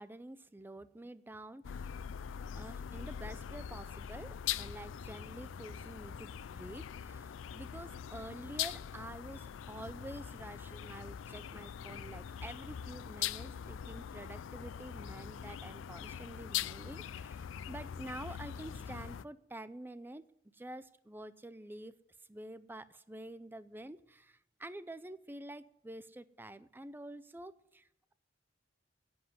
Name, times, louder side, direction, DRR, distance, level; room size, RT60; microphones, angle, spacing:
voice 1, 0.0-2.0 2.5-22.0 22.3-28.1, right 1 dB, 10° right, 14 dB, 0.5 m, -48 dB
sound 1, 1.6-19.2, left 9 dB, 80° left, 0.4 m, -42 dB
11.0 x 7.9 x 9.5 m, 0.78 s
head